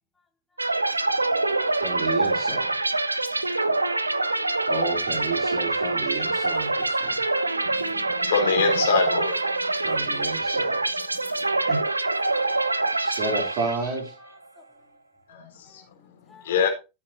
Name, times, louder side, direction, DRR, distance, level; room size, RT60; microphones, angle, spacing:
voice 1, 0.2-1.7 3.2-3.7 4.3-4.7 7.2-8.3 8.9-11.7 12.2-13.2 14.2-14.9 15.6-16.6, left 4 dB, 10° left, 2.5 m, -57 dB
sound 1, 0.6-14.1, right 2 dB, 80° right, 1.0 m, -25 dB
voice 2, 1.8-2.8 4.7-7.3 9.8-10.8 11.7-11.8 13.0-14.1, right 3 dB, 45° right, 3.9 m, -31 dB
voice 3, 7.6-9.4 11.3-11.7 15.3-16.7, left 6 dB, 60° left, 4.0 m, -26 dB
14.0 x 8.4 x 3.0 m
figure-of-eight pair, 90°, 0 cm